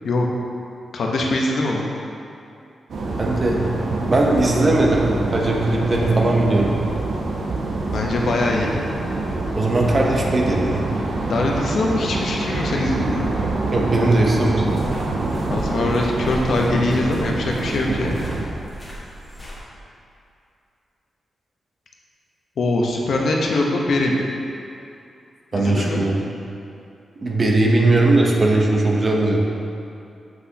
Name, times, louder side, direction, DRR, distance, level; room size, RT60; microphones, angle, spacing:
voice 1, 0.9-1.9 7.9-8.9 11.2-13.3 15.5-18.2 22.6-24.2 25.5-26.1, left 2 dB, 65° left, -1 dB, 0.9 m, -22 dB
sound 1, 2.9-18.5, right 2 dB, 70° right, 0.8 m, -26 dB
voice 2, 3.2-5.1 5.3-6.7 9.5-10.8 13.7-14.7 25.5-26.2 27.2-29.4, right 2 dB, 30° right, -1 dB, 0.8 m, -19 dB
sound 2, 14.6-19.6, equal, 10° left, 1.6 m, -37 dB
7.7 x 6.1 x 2.9 m, 2.6 s
wide cardioid pair, 150°, 0 cm